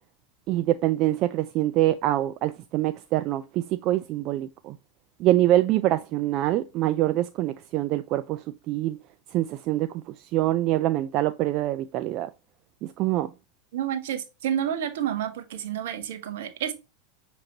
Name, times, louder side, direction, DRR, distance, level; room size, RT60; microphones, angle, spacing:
voice 1, 0.5-4.8 5.2-9.0 9.3-9.9 10.3-12.3 12.8-13.3, right 15 dB, 50° right, 0.3 m, -25 dB
voice 2, 13.7-16.7, right 10 dB, 70° right, 0.9 m, -29 dB
6.4 x 2.9 x 2.8 m
hypercardioid pair, 90°, 0 cm